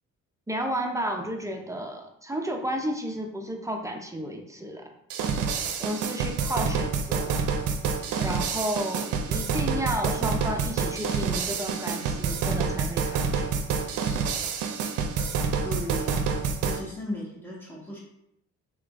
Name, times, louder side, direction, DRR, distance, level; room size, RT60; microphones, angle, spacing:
voice 1, 0.5-4.9 5.8-7.4 8.2-13.6, right 1 dB, 10° right, 3 dB, 0.4 m, -32 dB
sound 1, 5.1-16.8, right 5 dB, 80° right, 0.5 m, -28 dB
voice 2, 15.6-16.3 16.6-18.0, equal, 5° left, -4 dB, 1.2 m, -36 dB
3.5 x 3.3 x 2.4 m, 0.77 s
cardioid pair, 90°, 30 cm